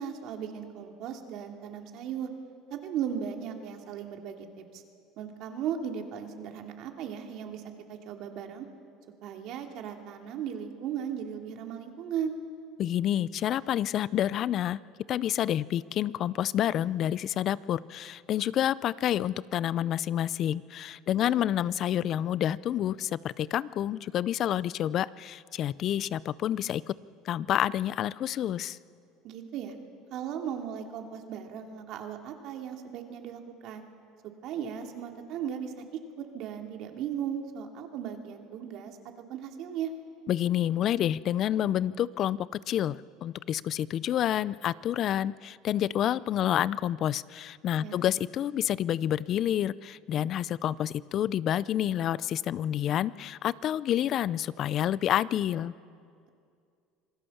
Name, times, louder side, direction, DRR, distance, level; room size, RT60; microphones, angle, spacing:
voice 1, 0.0-2.3 2.7-4.8 5.2-7.6 7.9-8.7 9.2-12.3 21.2-21.5 29.2-29.7 30.1-33.8 34.4-35.7 36.2-39.0 39.3-39.9 47.8-48.0, right 8 dB, 60° right, 3 dB, 2.7 m, -37 dB
voice 2, 12.8-14.8 15.1-26.9 27.3-28.8 40.3-55.7, left 11 dB, 50° left, 20 dB, 0.5 m, -28 dB
26.5 x 20.0 x 7.2 m, 2.3 s
supercardioid pair, 110°, 0 cm